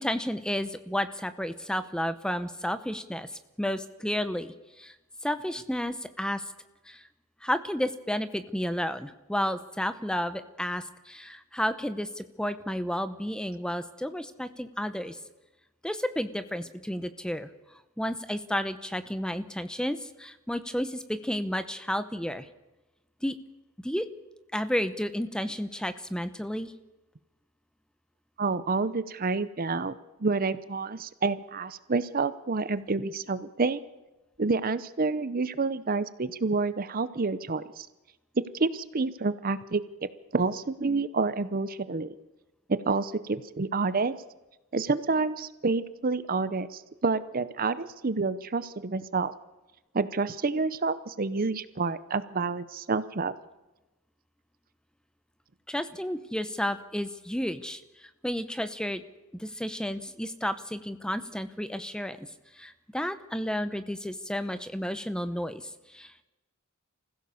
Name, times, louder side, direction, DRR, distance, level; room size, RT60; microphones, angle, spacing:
voice 1, 0.0-3.3 3.6-4.9 5.2-6.4 6.9-7.0 7.4-15.2 15.8-17.5 18.0-22.5 23.2-23.4 23.8-24.1 24.5-26.7 55.7-59.0 59.3-62.3 62.6-66.1, equal, 5° left, 11 dB, 0.8 m, -32 dB
voice 2, 28.4-33.8 34.4-37.9 38.4-39.8 40.3-42.1 42.7-44.1 44.7-49.3 49.9-53.3, right 4 dB, 40° right, 15 dB, 0.7 m, -28 dB
25.0 x 16.0 x 7.0 m, 1.0 s
head